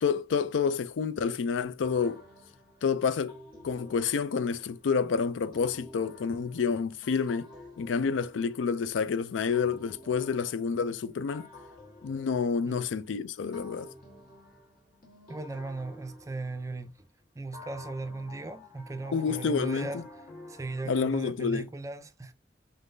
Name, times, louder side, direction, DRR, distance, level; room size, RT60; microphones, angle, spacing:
voice 1, 0.0-2.2 2.8-3.3 3.6-7.5 7.8-11.5 12.0-13.9 19.1-20.0 20.9-21.7, left 5 dB, 90° left, 0.4 m, -29 dB
sound 1, 1.8-4.9 5.5-9.1 9.5-13.1 13.5-17.0 17.5-20.9, left 1 dB, 50° left, 1.5 m, -51 dB
voice 2, 15.3-16.9 17.4-20.0 20.5-22.3, right 3 dB, 15° right, 0.4 m, -37 dB
3.8 x 3.6 x 2.6 m
head